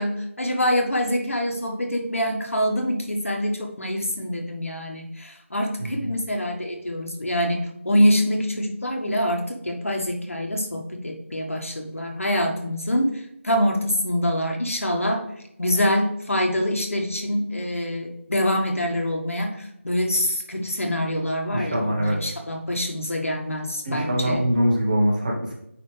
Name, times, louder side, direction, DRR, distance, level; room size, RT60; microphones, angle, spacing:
voice 1, 0.0-13.1 13.4-15.2 15.6-24.4, equal, 75° left, 2 dB, 1.7 m, -25 dB
voice 2, 21.5-22.2 23.8-25.5, equal, 35° right, -2 dB, 1.4 m, -23 dB
9.3 x 3.3 x 3.4 m, 0.79 s
figure-of-eight pair, 170°, 7 cm